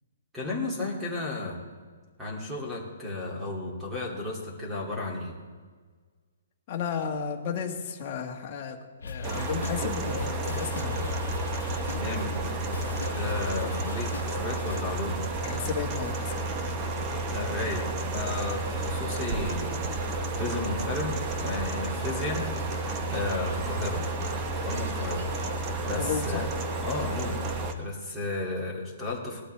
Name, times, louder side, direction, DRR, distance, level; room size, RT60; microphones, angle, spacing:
voice 1, 0.3-1.6 2.2-5.3 11.9-12.3 13.1-15.2 17.3-17.8 18.1-19.8 20.4-21.1 21.4-22.5 23.1-24.0 24.6-25.2 25.8-26.5 26.8-27.4 27.8-29.4, left 2 dB, 5° right, -4 dB, 2.6 m, -33 dB
voice 2, 6.7-8.8 9.0-11.0 15.4-16.5 25.9-26.5, left 6 dB, 30° left, 0 dB, 1.6 m, -33 dB
sound 1, 9.0-14.9, left 5 dB, 90° left, 0.8 m, -38 dB
sound 2, 9.2-27.7, right 2 dB, 20° right, 1.0 m, -31 dB
sound 3, 18.1-25.5, right 2 dB, 55° right, 2.8 m, -42 dB
19.5 x 12.5 x 3.4 m, 1.5 s
hypercardioid pair, 165°, 0 cm